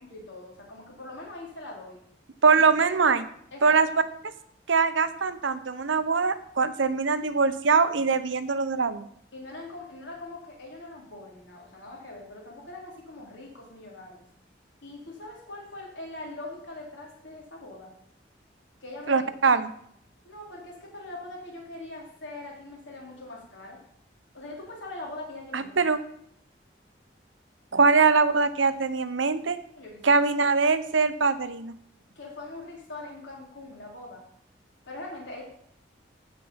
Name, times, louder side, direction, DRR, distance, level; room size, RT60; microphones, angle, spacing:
voice 1, 0.1-2.0 3.5-3.8 9.3-14.3 14.8-17.9 18.8-19.3 19.5-19.6 20.2-23.8 24.3-25.7 29.8-30.2 32.2-34.2 34.9-35.4, left 2 dB, 80° left, -1 dB, 4.0 m, -42 dB
voice 2, 2.4-3.3 3.6-3.9 4.7-9.1 19.1-19.7 25.5-26.0 27.7-29.6 30.0-31.7, right 4 dB, 90° right, 12 dB, 0.8 m, -22 dB
15.5 x 5.5 x 5.6 m, 0.68 s
head